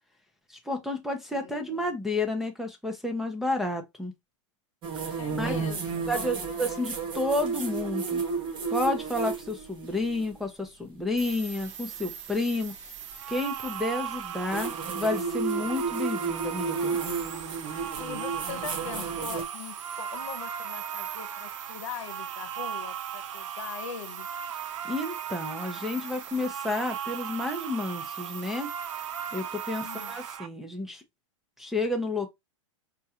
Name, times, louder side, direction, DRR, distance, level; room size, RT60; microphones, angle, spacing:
voice 1, 0.5-4.1 5.0-5.1 5.4-5.5 6.1-8.2 8.7-12.7 13.3-17.0 24.8-28.7 29.3-31.0 31.6-32.3, left 2 dB, ahead, 0.5 m, -31 dB
voice 2, 1.3-2.0 5.2-6.3 18.0-24.3 29.7-30.2, left 8 dB, 80° left, 0.8 m, -41 dB
sound 1, 4.8-10.3 12.4-12.5 14.5-19.4, right 5 dB, 30° right, 0.8 m, -32 dB
sound 2, 11.2-30.4, right 7 dB, 70° right, 0.8 m, -44 dB
sound 3, 13.1-30.5, right 9 dB, 85° right, 0.4 m, -38 dB
4.5 x 2.4 x 2.7 m
supercardioid pair, 140°, 16 cm